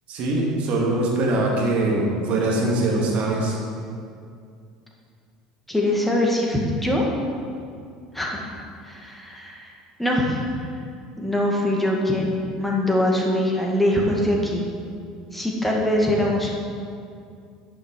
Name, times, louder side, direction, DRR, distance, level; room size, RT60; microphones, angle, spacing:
voice 1, 0.1-3.6, right 2 dB, 50° right, -2 dB, 2.1 m, -22 dB
voice 2, 5.7-7.1 8.1-8.5 8.8-9.7 10.0-10.4 11.2-14.7 15.3-16.5, left 1 dB, 5° left, -2 dB, 2.0 m, -22 dB
10.5 x 6.1 x 4.8 m, 2.3 s
hypercardioid pair, 70°, 3 cm